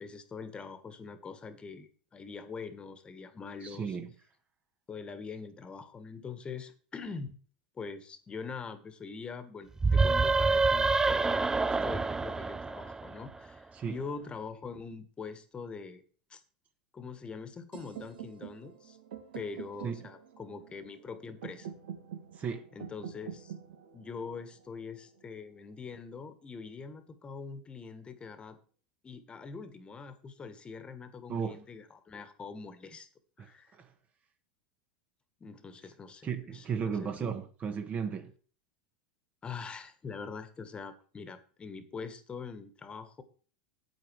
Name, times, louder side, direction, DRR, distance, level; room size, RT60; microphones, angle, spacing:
voice 1, 0.0-4.0 4.9-7.4 7.7-16.0 16.3-16.4 16.9-19.0 19.3-21.7 22.7-23.5 23.9-28.6 29.0-33.1 33.4-33.7 35.4-37.3 39.4-43.2, left 5 dB, 20° left, 1.6 m, -43 dB
voice 2, 3.6-4.1 13.7-14.0 19.8-20.1 22.4-22.7 31.3-31.6 33.4-33.5 33.7-33.9 36.2-38.3, right 6 dB, 35° right, 1.5 m, -35 dB
sound 1, 9.8-13.4, right 3 dB, 15° right, 0.4 m, -27 dB
sound 2, 17.7-25.7, right 9 dB, 75° right, 2.2 m, -47 dB
8.9 x 8.7 x 4.8 m
hypercardioid pair, 100°, 4 cm